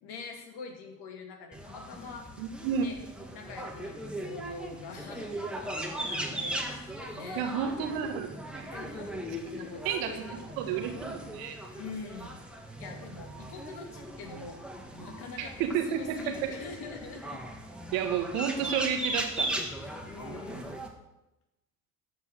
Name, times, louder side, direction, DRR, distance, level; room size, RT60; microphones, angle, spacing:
voice 1, 0.0-2.3 2.8-3.0 3.3-5.3 5.6-6.6 7.1-7.5 8.7-10.6 11.8-12.4 12.8-14.6 14.9-15.5 16.0-17.4 19.8-20.8, left 4 dB, 60° left, 3 dB, 2.4 m, -44 dB
sound 1, 1.5-20.9, right 1 dB, ahead, 1.8 m, -38 dB
voice 2, 2.4-2.9 7.3-8.3 8.5-8.7 9.8-10.1 10.6-11.5 15.4-16.2 17.9-19.5, right 8 dB, 70° right, 6 dB, 1.6 m, -31 dB
13.5 x 5.5 x 6.6 m, 0.97 s
hypercardioid pair, 65°, 43 cm